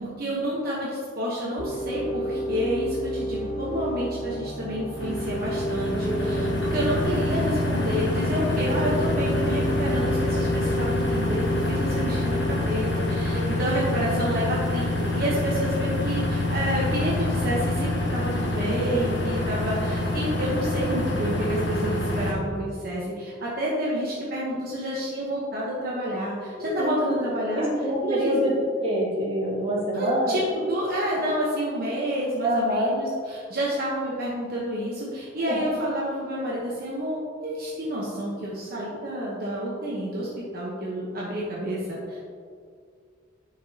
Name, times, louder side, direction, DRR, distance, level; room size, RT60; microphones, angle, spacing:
voice 1, 0.0-27.7 28.0-28.4 29.9-42.2, equal, 50° right, -6 dB, 1.1 m, -29 dB
sound 1, 1.6-13.6, equal, 35° left, 0.7 m, -30 dB
sound 2, 5.0-22.3, left 1 dB, 65° left, 1.3 m, -27 dB
voice 2, 5.9-6.6 13.3-13.4 26.6-27.1 27.4-28.5 28.8-30.4 32.4-32.9 35.5-35.7, equal, 30° right, -5 dB, 1.8 m, -26 dB
11.0 x 5.0 x 2.9 m, 2.1 s
head